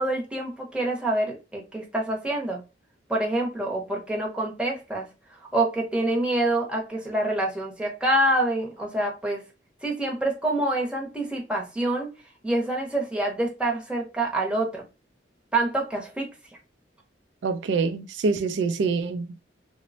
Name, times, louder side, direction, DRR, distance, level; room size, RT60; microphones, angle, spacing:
voice 1, 0.0-2.6 3.1-9.4 9.8-12.1 12.4-14.8 15.5-16.3, right 1 dB, 5° right, 0.7 m, -26 dB
voice 2, 17.4-19.4, right 4 dB, 75° right, 0.3 m, -26 dB
3.0 x 2.0 x 2.6 m
head